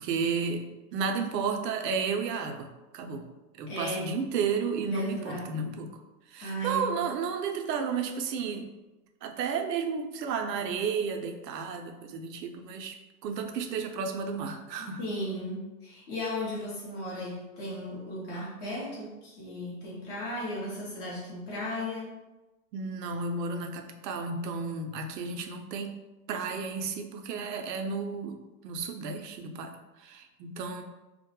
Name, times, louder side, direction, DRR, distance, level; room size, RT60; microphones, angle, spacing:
voice 1, 0.0-2.7 2.9-3.2 3.6-6.0 6.3-8.7 9.2-12.9 13.2-15.0 22.7-25.9 26.3-30.8, right 5 dB, 85° right, 5 dB, 0.6 m, -32 dB
voice 2, 3.7-4.1 4.8-5.6 6.4-7.1 14.8-22.1, left 1 dB, 25° left, -6 dB, 0.7 m, -36 dB
2.2 x 2.0 x 2.8 m, 1.1 s
hypercardioid pair, 145°, 48 cm